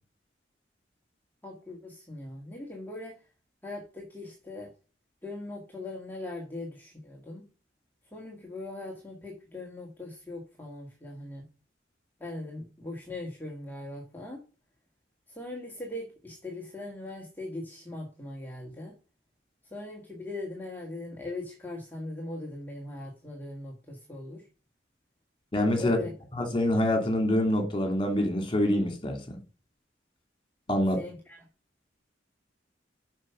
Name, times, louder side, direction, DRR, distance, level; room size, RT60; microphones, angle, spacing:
voice 1, 1.4-3.2 3.6-4.7 5.2-7.5 8.1-11.4 12.2-14.4 15.3-18.9 19.7-24.4 25.8-26.1 31.0-31.4, left 2 dB, 10° left, 1.8 m, -40 dB
voice 2, 25.5-26.0 26.4-29.4 30.7-31.0, left 1 dB, 25° left, 2.7 m, -26 dB
7.8 x 5.8 x 5.6 m
head